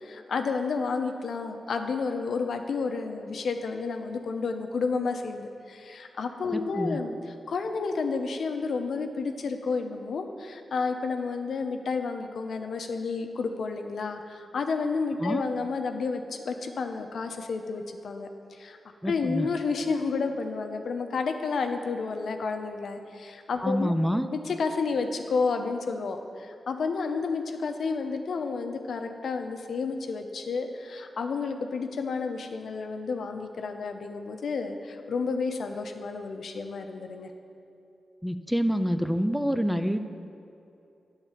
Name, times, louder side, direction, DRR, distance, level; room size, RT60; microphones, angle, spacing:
voice 1, 0.0-7.2 7.5-18.3 18.6-18.8 19.0-23.9 24.3-37.3, left 4 dB, 75° left, 5 dB, 0.6 m, -31 dB
voice 2, 6.5-7.0 15.2-15.5 19.0-19.5 23.6-24.3 38.2-40.0, equal, ahead, 9 dB, 0.4 m, -27 dB
10.0 x 4.0 x 7.3 m, 2.8 s
cardioid pair, 80°, 0 cm